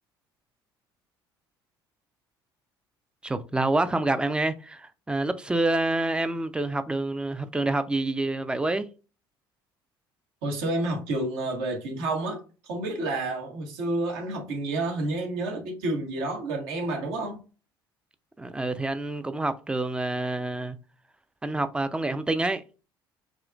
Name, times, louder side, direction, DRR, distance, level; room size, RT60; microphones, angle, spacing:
voice 1, 3.2-8.9 18.4-20.8 21.4-22.6, right 2 dB, 10° right, 0.4 m, -27 dB
voice 2, 10.4-17.4, right 2 dB, 65° right, 1.4 m, -30 dB
4.9 x 3.0 x 2.4 m
figure-of-eight pair, 55°, 12 cm